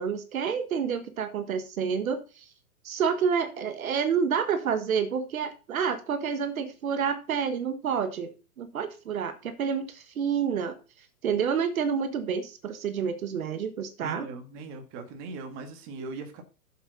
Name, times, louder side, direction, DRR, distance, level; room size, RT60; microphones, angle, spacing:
voice 1, 0.0-2.5 2.8-8.3 8.6-10.8 11.2-14.3, right 7 dB, 65° right, 10 dB, 1.6 m, -29 dB
voice 2, 14.0-16.4, right 3 dB, 30° right, 6 dB, 1.7 m, -39 dB
7.9 x 7.7 x 4.0 m, 0.32 s
hypercardioid pair, 130°, 45 cm